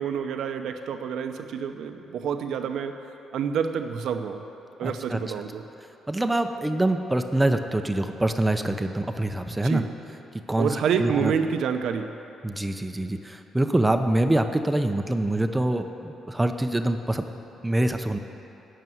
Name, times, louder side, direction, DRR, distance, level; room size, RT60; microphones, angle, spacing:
voice 1, 0.0-3.0 3.3-4.4 4.8-5.6 9.5-9.9 10.6-12.1, right 7 dB, 75° right, 7 dB, 0.8 m, -28 dB
voice 2, 4.8-5.2 6.1-9.8 10.5-11.3 12.4-17.3 17.6-18.2, right 1 dB, 10° right, 7 dB, 0.7 m, -25 dB
12.5 x 6.8 x 9.3 m, 2.9 s
cardioid pair, 90°, 0 cm